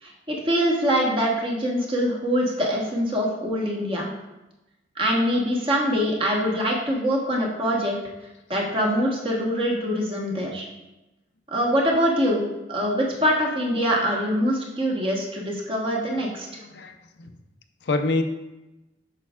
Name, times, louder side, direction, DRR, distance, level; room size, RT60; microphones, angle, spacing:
voice 1, 0.0-4.1 5.0-8.0 8.5-10.7 11.5-16.5, equal, 30° right, -2 dB, 1.2 m, -24 dB
voice 2, 16.3-17.3 17.8-18.2, left 3 dB, 75° left, 7 dB, 0.6 m, -27 dB
8.6 x 6.3 x 2.4 m, 1.0 s
head